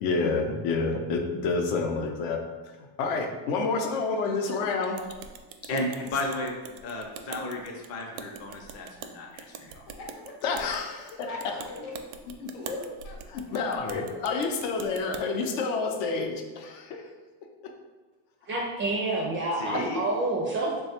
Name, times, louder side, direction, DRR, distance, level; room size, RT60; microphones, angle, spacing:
voice 1, 0.0-2.7 3.0-5.0 10.4-11.1 12.4-12.5 13.3-17.1 17.6-17.7 19.7-19.8, left 4 dB, 65° left, 3 dB, 0.7 m, -29 dB
sound 1, 5.0-15.2, right 6 dB, 85° right, 0.5 m, -44 dB
voice 2, 5.7-6.5 6.8-9.8 19.5-20.0, left 2 dB, 30° left, 0 dB, 0.6 m, -33 dB
voice 3, 9.9-10.4 11.1-11.9 12.5-14.1, left 3 dB, 90° left, -1 dB, 1.1 m, -40 dB
voice 4, 18.5-20.8, right 2 dB, 25° right, -2 dB, 0.3 m, -28 dB
3.2 x 2.3 x 4.3 m, 1.3 s
cardioid pair, 140°, 50 cm